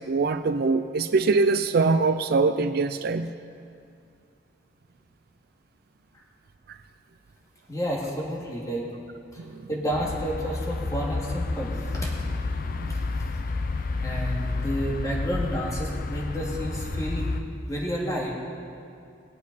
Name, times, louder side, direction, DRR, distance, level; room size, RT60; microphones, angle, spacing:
voice 1, 0.1-3.3 6.7-6.8 9.4-9.7 12.7-13.0, right 4 dB, 55° right, 10 dB, 0.4 m, -23 dB
voice 2, 7.7-8.9 9.3-12.1 12.9-13.0 14.0-17.3 17.7-18.3, equal, 20° left, -3 dB, 2.1 m, -30 dB
sound 1, 9.9-17.4, left 3 dB, 50° left, 0.6 m, -30 dB
20.0 x 8.3 x 4.1 m, 2.4 s
head